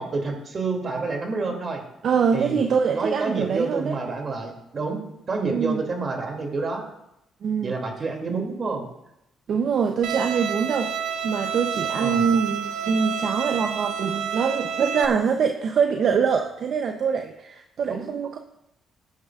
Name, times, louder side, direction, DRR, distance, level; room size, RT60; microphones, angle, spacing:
voice 1, 0.0-1.8 2.3-2.6 3.0-5.0 5.3-6.8 7.6-8.9 12.0-12.3 17.9-18.1, right 3 dB, 45° right, 2 dB, 2.7 m, -28 dB
voice 2, 2.0-4.0 5.5-5.8 7.4-7.8 9.5-10.9 11.2-18.4, right 6 dB, 60° right, 5 dB, 0.7 m, -24 dB
Bowed string instrument, 10.0-15.1, right 7 dB, 90° right, 0.8 m, -29 dB
18.0 x 9.3 x 2.5 m, 0.84 s
cardioid pair, 90°, 0 cm